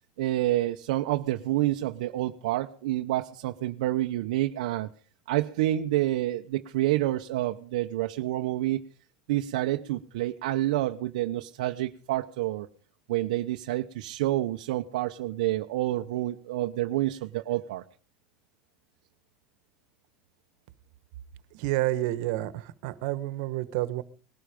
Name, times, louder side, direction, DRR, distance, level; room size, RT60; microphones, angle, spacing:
voice 1, 0.2-4.9 5.3-8.8 9.3-12.7 13.1-17.8, right 15 dB, 85° right, 0.8 m, -28 dB
voice 2, 21.5-24.0, right 16 dB, 70° right, 1.4 m, -29 dB
20.0 x 12.5 x 5.2 m
supercardioid pair, 125°, 4 cm